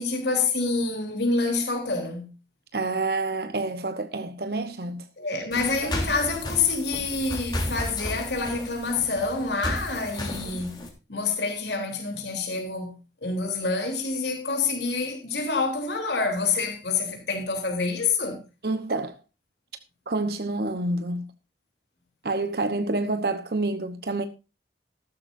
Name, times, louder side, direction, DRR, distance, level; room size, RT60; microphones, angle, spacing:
voice 1, 0.0-2.3 5.2-10.8 11.1-12.9 13.2-18.4, left 4 dB, 75° left, 3.5 m, -27 dB
voice 2, 2.7-5.0 5.8-5.9 10.5-10.6 18.6-19.2 20.1-21.3 22.2-24.3, right 2 dB, 60° right, 1.0 m, -28 dB
sound 1, 5.5-10.9, left 1 dB, 25° left, 3.2 m, -33 dB
14.5 x 12.5 x 2.6 m
head